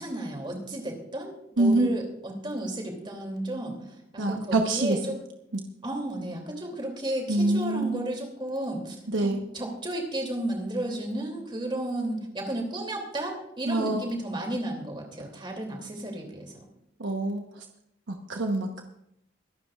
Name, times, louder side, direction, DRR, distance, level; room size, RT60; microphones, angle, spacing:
voice 1, 0.0-5.2 5.8-16.5, right 1 dB, 25° right, 2 dB, 2.8 m, -33 dB
voice 2, 1.6-1.9 4.2-5.0 5.5-5.6 7.3-8.1 9.1-9.4 13.7-14.0 17.0-17.6 18.1-18.8, right 2 dB, 80° right, 3 dB, 1.0 m, -25 dB
23.5 x 12.0 x 2.4 m, 0.78 s
head